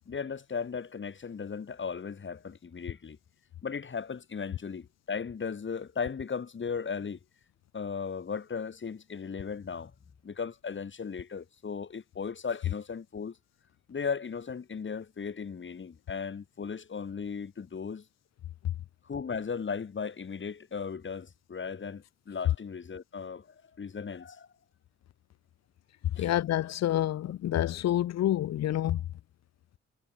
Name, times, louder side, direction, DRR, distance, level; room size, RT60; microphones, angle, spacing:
voice 1, 0.1-3.2 3.6-7.2 7.7-9.9 10.2-13.4 13.9-18.0 19.0-24.5 26.2-26.3, left 6 dB, 40° left, 1.8 m, -36 dB
voice 2, 26.2-29.0, left 12 dB, 60° left, 0.6 m, -28 dB
cardioid pair, 75°, 30 cm